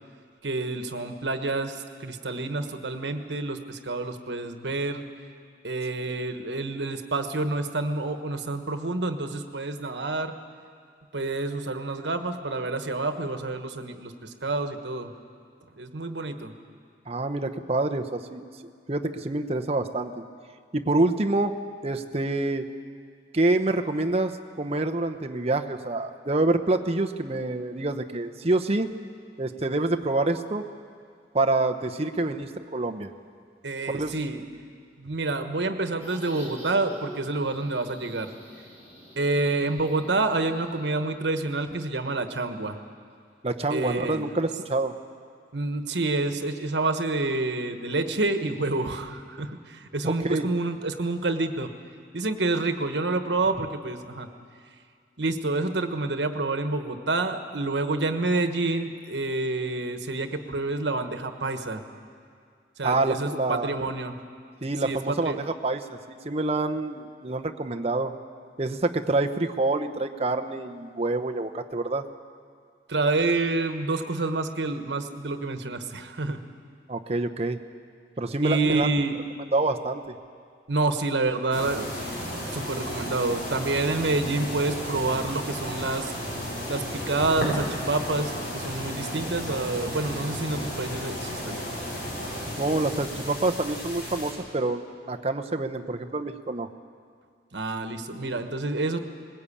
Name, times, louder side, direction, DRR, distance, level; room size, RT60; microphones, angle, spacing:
voice 1, 0.4-5.0 5.6-10.3 11.1-15.1 15.8-16.5 33.6-34.4 35.0-38.3 39.2-42.8 43.7-44.3 45.5-51.7 52.1-54.3 55.2-61.8 62.8-64.2 64.8-65.4 72.9-76.4 78.4-79.2 80.7-81.9 82.1-86.1 86.7-91.6 97.5-99.0, right 2 dB, 80° right, 8 dB, 1.3 m, -28 dB
voice 2, 17.1-18.5 18.9-20.1 20.7-21.5 21.8-22.7 23.3-28.9 29.4-30.6 31.3-33.1 33.9-34.1 43.4-44.9 50.0-50.5 62.8-63.7 64.6-68.1 68.6-72.0 76.9-77.6 78.2-78.9 79.5-80.1 92.6-94.8 95.1-96.7, right 2 dB, 35° right, 5 dB, 0.9 m, -27 dB
sound 1, 36.0-40.9, equal, 35° left, 7.8 m, -45 dB
sound 2, 81.5-94.3, equal, 50° left, 5.9 m, -34 dB
20.0 x 16.5 x 8.6 m, 2.2 s
head